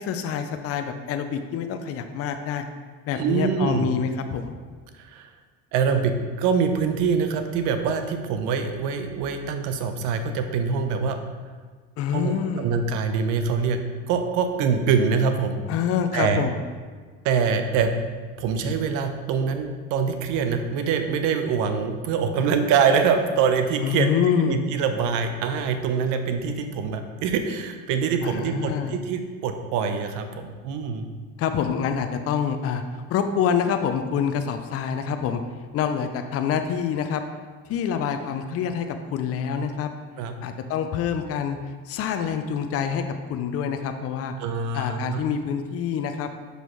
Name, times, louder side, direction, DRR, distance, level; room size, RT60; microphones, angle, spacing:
voice 1, 0.0-2.7 3.1-4.6 5.9-6.1 12.0-12.7 15.7-16.6 23.8-24.6 28.2-29.0 31.4-35.4 35.7-37.2 37.7-39.9 40.4-43.0 43.3-44.3 44.7-46.3, left 7 dB, 45° left, 7 dB, 0.5 m, -26 dB
voice 2, 3.1-3.9 5.0-5.3 5.7-11.2 12.1-13.8 14.1-15.6 16.1-16.4 17.2-17.9 18.4-24.1 24.4-31.1 40.2-40.3 44.4-45.2, right 6 dB, 75° right, 7 dB, 0.7 m, -24 dB
5.9 x 5.3 x 3.1 m, 1.5 s
supercardioid pair, 100°, 32 cm